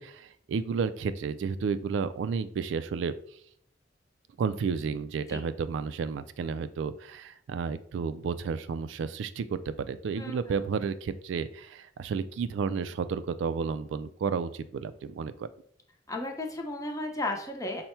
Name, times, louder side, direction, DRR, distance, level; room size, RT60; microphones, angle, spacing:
voice 1, 0.0-3.1 4.4-9.6 9.9-15.5, right 5 dB, 90° right, 13 dB, 0.3 m, -32 dB
voice 2, 16.1-17.9, left 2 dB, 20° left, 2 dB, 0.7 m, -34 dB
5.5 x 2.2 x 4.3 m, 0.64 s
head